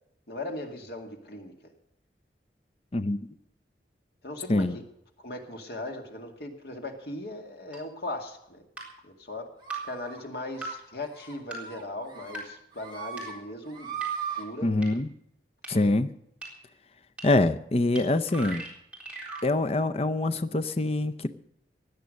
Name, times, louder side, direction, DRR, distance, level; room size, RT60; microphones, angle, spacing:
voice 1, 0.3-1.5 4.2-4.8 5.2-8.6 9.0-9.5 9.8-14.0 14.3-14.7, left 1 dB, 60° left, 3 dB, 2.2 m, -38 dB
sound 1, 7.7-7.8 8.8-8.9 9.7-9.8 10.6-10.7 11.5-11.6 12.3-12.4 13.2-13.3 14.0-14.1 14.8-14.9 15.6-15.7 16.4-16.5 17.2-17.3 18.0-18.1 18.3-19.5, right 3 dB, 5° right, 3.8 m, -37 dB
sound 2, 9.6-10.2 10.6-10.8 11.1-11.3 11.7-12.4 12.7-13.3 13.6-14.4, right 7 dB, 25° right, 2.8 m, -37 dB
voice 2, 14.6-15.1 15.7-16.1 17.2-18.6 19.4-21.3, left 2 dB, 35° left, 10 dB, 0.6 m, -25 dB
16.5 x 10.5 x 6.5 m, 0.77 s
head